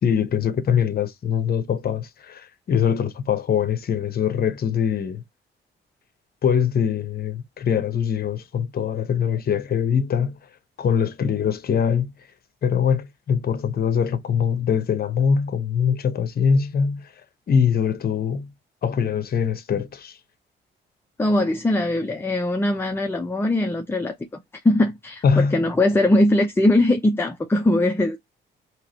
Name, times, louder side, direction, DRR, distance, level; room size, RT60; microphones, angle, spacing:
voice 1, 0.0-5.2 6.4-10.4 10.8-12.1 12.6-17.1 17.5-18.5 18.8-20.2 25.2-25.6, left 7 dB, 50° left, 0.9 m, -23 dB
voice 2, 21.2-24.2 24.6-28.2, left 1 dB, 10° left, 0.7 m, -20 dB
4.6 x 3.0 x 2.9 m
cardioid pair, 90°, 20 cm